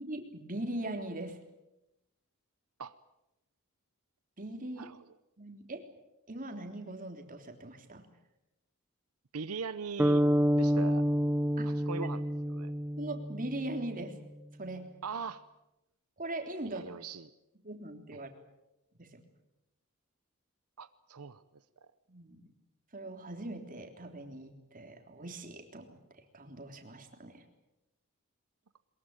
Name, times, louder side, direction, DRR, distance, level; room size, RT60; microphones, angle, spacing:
voice 1, 0.0-1.4 4.4-4.9 5.4-5.9 6.3-8.0 11.6-12.1 13.0-14.2 14.6-14.9 16.2-16.9 17.6-18.3 19.0-19.2 22.1-22.5 22.9-27.4, right 1 dB, 40° right, 5 dB, 3.4 m, -41 dB
voice 2, 9.3-10.2 10.6-11.0 11.6-12.2 12.5-12.7 15.0-15.4 16.6-17.3 18.1-18.2 20.8-21.6, right 5 dB, 90° right, 12 dB, 0.8 m, -40 dB
sound 1, 10.0-13.9, equal, 10° right, 0.9 m, -28 dB
22.5 x 22.0 x 8.9 m, 0.91 s
head